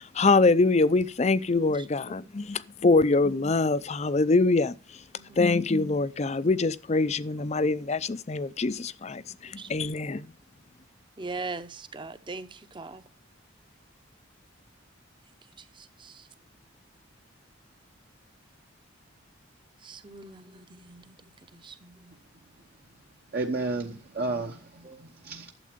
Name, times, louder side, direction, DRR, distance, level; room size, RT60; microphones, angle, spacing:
voice 1, 0.0-4.7 5.4-10.3, left 3 dB, 35° left, 0.5 m, -24 dB
voice 2, 5.1-5.7 9.6-9.7 11.2-13.0 15.6-16.3 19.8-22.1 24.8-25.0, right 3 dB, 25° right, 0.8 m, -41 dB
voice 3, 23.3-25.5, right 2 dB, 50° right, 1.0 m, -32 dB
12.0 x 7.6 x 5.1 m
head